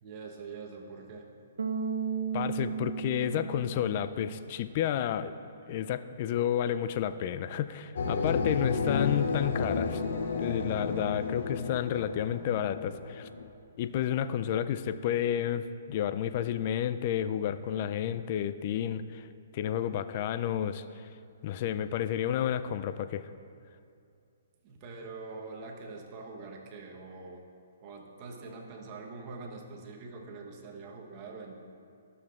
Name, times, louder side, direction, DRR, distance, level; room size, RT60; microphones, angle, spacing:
voice 1, 0.0-1.3 24.6-27.4 27.8-31.5, right 4 dB, 35° right, 1 dB, 1.0 m, -44 dB
Bass guitar, 1.6-4.7, right 6 dB, 80° right, 0.6 m, -35 dB
voice 2, 2.3-5.3 5.7-10.0 10.4-13.3 13.8-19.3 19.5-20.8 21.4-23.3, left 10 dB, 45° left, 12 dB, 0.3 m, -31 dB
sound 1, 8.0-13.5, left 4 dB, 70° left, 0.9 m, -32 dB
13.0 x 6.8 x 2.5 m, 2.4 s
hypercardioid pair, 135°, 0 cm